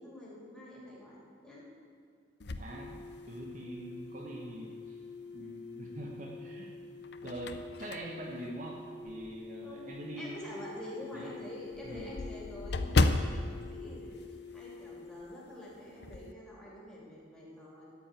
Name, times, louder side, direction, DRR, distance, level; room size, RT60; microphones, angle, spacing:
voice 1, 0.0-1.7 9.6-9.9 10.2-14.2 14.5-17.8, left 1 dB, 5° left, -6 dB, 3.0 m, -46 dB
sound 1, 2.4-3.7 4.3-4.4 5.8-6.4 6.8-9.5 9.9-10.0 10.4-10.5 10.8-10.9 11.1-14.9 15.2-15.4 15.7-16.3, left 2 dB, 55° left, 0.6 m, -34 dB
voice 2, 2.5-5.0 5.3-6.7 7.2-10.5 11.1-11.3 11.8-12.1, right 1 dB, 40° right, -1 dB, 1.1 m, -44 dB
sound 2, 2.6-15.3, left 4 dB, 85° right, 3.8 m, -47 dB
13.5 x 5.3 x 9.1 m, 2.2 s
head